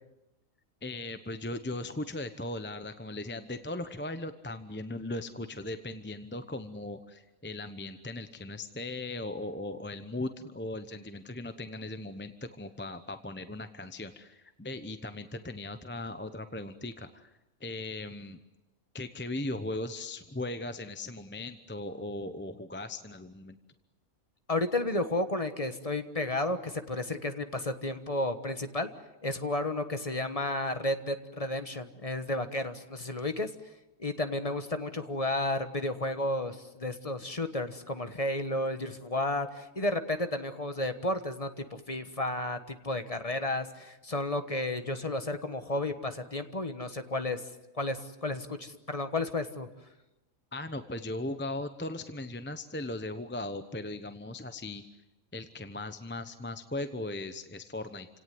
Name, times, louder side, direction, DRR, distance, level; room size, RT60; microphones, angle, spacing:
voice 1, 0.8-17.3 17.6-18.4 18.9-23.6 50.5-54.8 55.3-58.1, left 2 dB, 10° left, 9 dB, 0.8 m, -38 dB
voice 2, 24.5-28.9 29.2-33.5 34.0-47.4 47.7-49.7, left 2 dB, 25° left, 9 dB, 1.3 m, -32 dB
29.0 x 18.0 x 9.5 m, 0.98 s
omnidirectional pair, 1.4 m